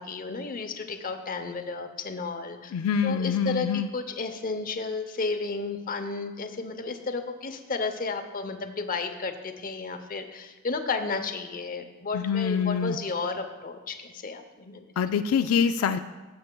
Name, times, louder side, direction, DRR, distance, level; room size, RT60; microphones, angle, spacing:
voice 1, 0.0-2.7 3.0-14.9, left 4 dB, 40° left, 7 dB, 0.7 m, -33 dB
voice 2, 2.7-3.9 12.1-13.0 15.0-16.0, left 6 dB, 85° left, 8 dB, 0.3 m, -25 dB
16.5 x 7.7 x 2.3 m, 1.2 s
head